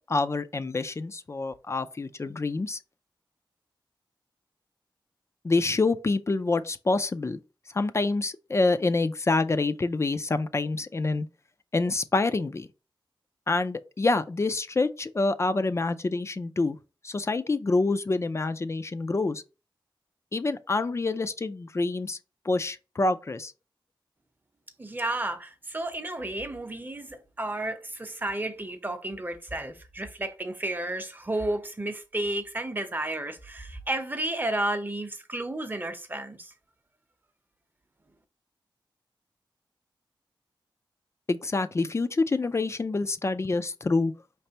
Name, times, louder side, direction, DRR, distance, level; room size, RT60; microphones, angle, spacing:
voice 1, 0.1-2.8 5.4-7.4 7.7-11.3 11.7-12.7 13.5-16.8 17.0-19.4 20.3-22.2 22.4-23.5 41.3-44.1, left 3 dB, 35° left, 0.4 m, -27 dB
voice 2, 24.8-36.5, right 1 dB, 20° right, 0.7 m, -32 dB
5.0 x 3.3 x 2.8 m
wide cardioid pair, 90°, 9 cm